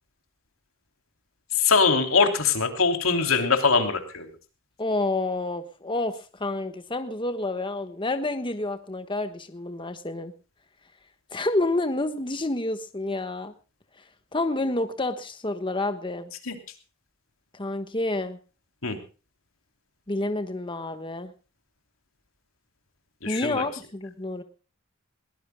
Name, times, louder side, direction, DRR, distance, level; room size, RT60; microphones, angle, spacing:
voice 1, 1.6-4.3 16.5-16.6 18.8-19.0 23.2-23.6, left 4 dB, 85° left, 6 dB, 3.2 m, -22 dB
voice 2, 4.8-10.3 11.3-13.5 14.3-16.3 17.5-18.4 20.1-21.3 23.2-24.4, left 2 dB, 25° left, 8 dB, 1.3 m, -29 dB
22.0 x 19.0 x 2.2 m, 0.34 s
head